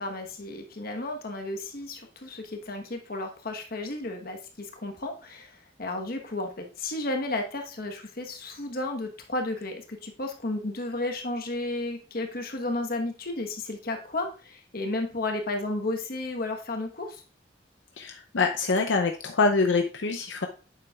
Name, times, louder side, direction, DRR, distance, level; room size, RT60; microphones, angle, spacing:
voice 1, 0.0-17.2, left 2 dB, 55° left, 4 dB, 1.2 m, -33 dB
voice 2, 18.0-20.5, left 4 dB, 85° left, 4 dB, 0.6 m, -25 dB
8.7 x 6.9 x 2.4 m, 0.35 s
head